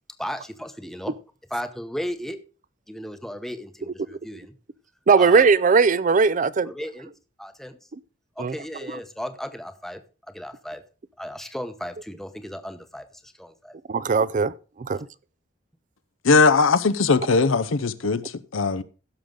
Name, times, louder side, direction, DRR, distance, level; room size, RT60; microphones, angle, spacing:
voice 1, 0.2-1.2 1.5-2.4 2.9-4.5 5.2-5.5 6.6-7.1 7.4-7.8 8.4-10.0 10.3-10.8 11.2-13.8, equal, ahead, 0.8 m, -35 dB
voice 2, 5.1-6.7 8.4-8.5 13.9-14.5 14.8-15.1, right 5 dB, 40° right, 0.4 m, -18 dB
voice 3, 16.2-18.8, left 4 dB, 90° left, 0.7 m, -20 dB
16.0 x 6.5 x 3.8 m
head